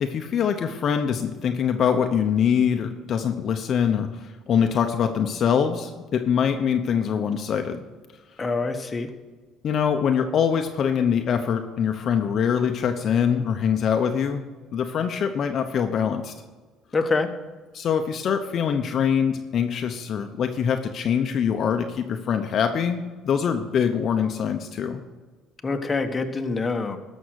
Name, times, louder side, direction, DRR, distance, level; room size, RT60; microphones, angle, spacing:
voice 1, 0.0-7.8 9.6-14.4 14.7-16.3 17.7-25.0, left 7 dB, 50° left, 5 dB, 0.8 m, -24 dB
voice 2, 8.4-9.1 16.9-17.3 25.6-27.0, left 3 dB, 20° left, 5 dB, 1.2 m, -25 dB
13.0 x 6.3 x 6.4 m, 1.3 s
cardioid pair, 100°, 0 cm